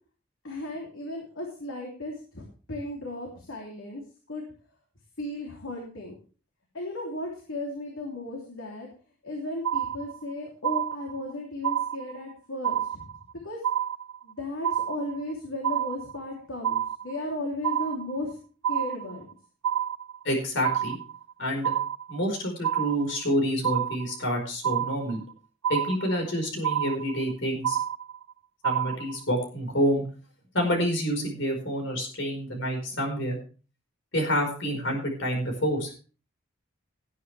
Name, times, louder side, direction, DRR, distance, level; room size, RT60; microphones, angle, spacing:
voice 1, 0.4-4.0 4.3-4.5 5.2-6.2 6.7-8.9 9.2-13.1 13.4-13.6 14.2-18.4 18.7-19.3, left 1 dB, 80° left, -1 dB, 3.2 m, -35 dB
sound 1, 9.6-10.3 10.6-11.3 11.6-12.3 12.6-13.3 13.6-14.3 14.6-15.3 15.6-16.3 16.6-17.3 17.6-18.3 18.6-19.3 19.6-20.3 20.6-21.3 21.6-22.3 22.6-23.3 23.6-24.3 24.6-25.3 25.6-26.3 26.6-27.3 27.6-28.3 28.6-29.3, right 10 dB, 90° right, 0.6 m, -29 dB
voice 2, 20.2-21.0 21.4-21.7 22.1-25.2 25.7-27.8 28.6-30.0 30.5-33.4 34.1-35.9, equal, 60° left, 2 dB, 4.9 m, -28 dB
18.0 x 9.5 x 3.4 m, 0.37 s
head